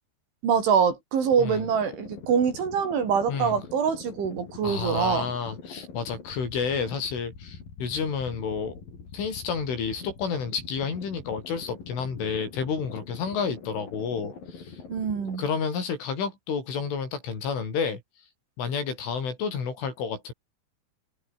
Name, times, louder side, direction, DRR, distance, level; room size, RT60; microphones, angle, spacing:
voice 1, 0.4-5.3 14.9-15.4, right 7 dB, 70° right, 7.0 m, -24 dB
sound 1, 1.2-15.4, left 5 dB, 45° left, 6.7 m, -44 dB
voice 2, 4.6-8.8 9.1-14.8 15.4-18.0 18.6-20.3, left 6 dB, 75° left, 8.6 m, -30 dB
omnidirectional pair, 5.6 m